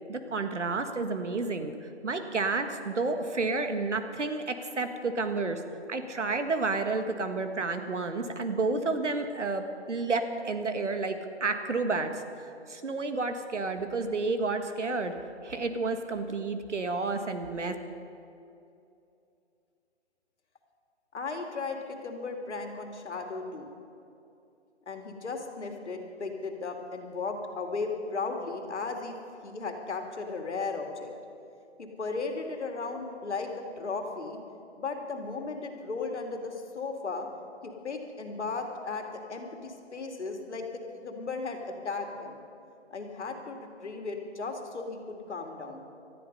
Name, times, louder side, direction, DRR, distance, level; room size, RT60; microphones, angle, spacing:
voice 1, 0.1-5.6 5.9-12.2 12.7-15.1 15.4-17.8, right 3 dB, 90° right, 7 dB, 1.7 m, -30 dB
voice 2, 21.1-23.7 24.9-29.2 29.4-31.1 31.8-34.4 34.8-37.3 37.6-42.4 42.9-45.8, left 4 dB, 75° left, 3 dB, 2.4 m, -36 dB
18.5 x 13.0 x 5.5 m, 2.7 s
hypercardioid pair, 165°, 35 cm